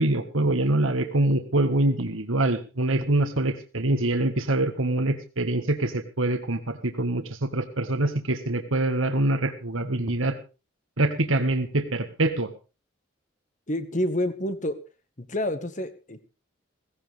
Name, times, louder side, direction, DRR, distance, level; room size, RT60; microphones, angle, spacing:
voice 1, 0.0-10.3 11.0-12.5, right 2 dB, 75° right, 7 dB, 1.7 m, -25 dB
voice 2, 13.7-14.8 15.2-16.2, left 1 dB, 35° left, 10 dB, 1.6 m, -28 dB
17.5 x 16.0 x 3.5 m, 0.32 s
head